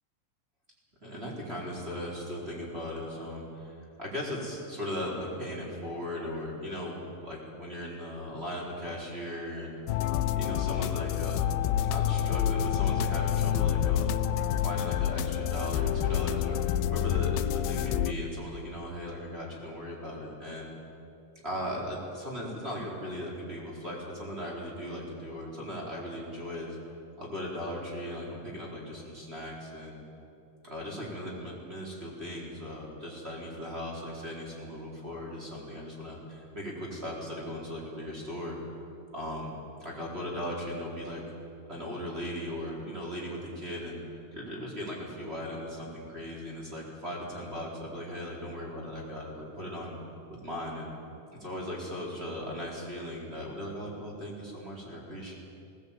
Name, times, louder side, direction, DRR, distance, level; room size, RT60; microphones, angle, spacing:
voice 1, 1.0-9.8 10.4-11.6 11.8-14.2 14.6-17.4 17.7-20.7 21.4-26.8 27.2-30.0 30.6-38.6 39.1-39.5 39.8-41.2 41.7-44.0 44.3-49.9 50.3-50.9 51.4-55.3, equal, 15° right, -3 dB, 3.8 m, -38 dB
sound 1, 9.9-18.1, left 10 dB, 85° left, 2.3 m, -28 dB
20.0 x 19.0 x 8.9 m, 2.7 s
omnidirectional pair, 5.2 m